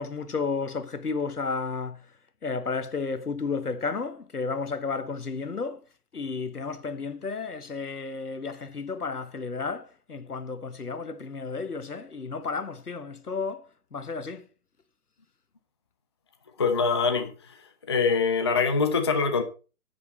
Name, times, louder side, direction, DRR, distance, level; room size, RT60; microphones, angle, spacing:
voice 1, 0.0-2.1 2.4-5.8 6.1-14.5, left 4 dB, 80° left, 1.4 m, -32 dB
voice 2, 16.6-17.6 17.9-19.4, left 5 dB, 20° left, 0.5 m, -24 dB
9.8 x 8.5 x 4.1 m
figure-of-eight pair, 135°, 45 cm